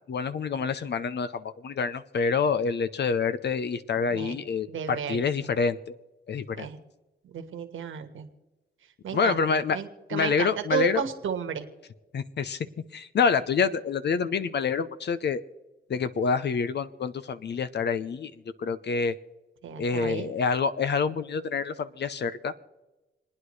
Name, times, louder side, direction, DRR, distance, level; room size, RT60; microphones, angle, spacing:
voice 1, 0.1-5.8 6.3-6.7 9.1-9.8 10.1-11.0 12.1-12.6 12.9-15.4 15.9-18.3 18.6-19.1 19.8-22.5, left 5 dB, 55° left, 13 dB, 0.7 m, -27 dB
voice 2, 4.7-5.2 6.6-6.8 7.2-8.3 9.0-11.7 19.6-20.3, right 7 dB, 75° right, 6 dB, 1.6 m, -33 dB
28.5 x 9.7 x 3.2 m, 1.1 s
cardioid pair, 75°, 20 cm